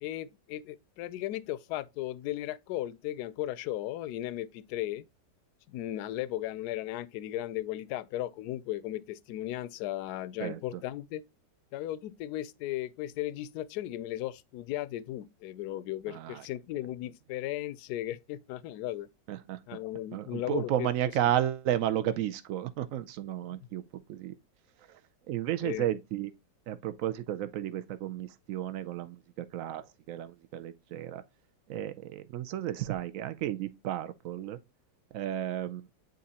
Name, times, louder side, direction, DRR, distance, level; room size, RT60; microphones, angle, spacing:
voice 1, 0.0-5.0 5.7-11.2 11.7-19.1 19.7-21.2 23.5-23.7 25.6-25.9, left 14 dB, 70° left, 1.0 m, -36 dB
voice 2, 10.4-10.8 16.1-16.5 19.3-19.6 20.1-23.8 24.1-24.4 24.9-25.0 25.3-26.3 26.7-31.2 31.7-34.6 35.1-35.9, right 12 dB, 75° right, 0.7 m, -33 dB
9.4 x 3.8 x 2.8 m
omnidirectional pair, 1.9 m